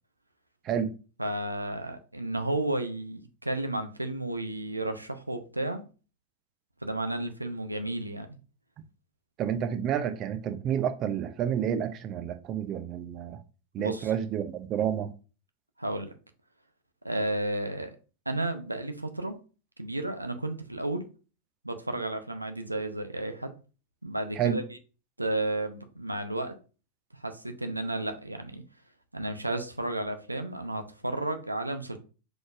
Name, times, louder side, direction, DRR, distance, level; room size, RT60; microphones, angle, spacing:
voice 1, 1.2-5.8 6.8-8.3 13.8-14.1 15.8-16.1 17.0-17.9 18.3-19.4 19.8-21.1 21.6-23.5 24.0-24.6 25.2-26.5 27.1-28.6 29.1-32.0, right 1 dB, 85° right, 0.5 m, -32 dB
voice 2, 9.4-13.4 13.7-15.1 24.4-24.6, right 9 dB, 35° right, 0.5 m, -29 dB
4.9 x 4.0 x 2.5 m
figure-of-eight pair, 90°, 0 cm